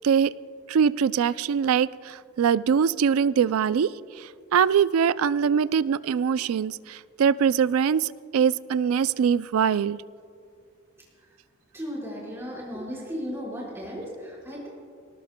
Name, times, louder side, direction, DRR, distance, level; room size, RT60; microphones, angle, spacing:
voice 1, 0.7-3.9 4.5-10.0, right 7 dB, 85° right, 17 dB, 0.3 m, -22 dB
voice 2, 11.7-14.7, equal, 10° right, -5 dB, 4.4 m, -35 dB
23.0 x 19.0 x 2.2 m, 2.3 s
head